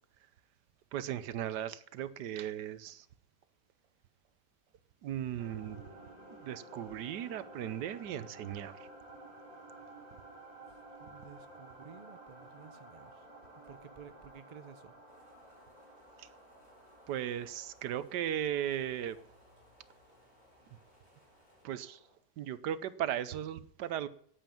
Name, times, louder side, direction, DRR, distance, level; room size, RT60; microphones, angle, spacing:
voice 1, 0.9-3.1 5.0-5.8 6.3-8.9 16.2-16.3 17.1-19.2 20.7-20.8 21.6-22.1 22.4-24.1, right 10 dB, 85° right, 15 dB, 1.4 m, -37 dB
sound 1, 5.4-22.1, right 1 dB, 25° left, 4.5 m, -54 dB
voice 2, 10.7-13.3 13.6-14.9, right 6 dB, 35° right, 10 dB, 0.7 m, -54 dB
sound 2, 15.1-21.6, left 1 dB, 40° left, 3.6 m, -69 dB
9.0 x 8.9 x 9.0 m, 0.63 s
omnidirectional pair, 1.8 m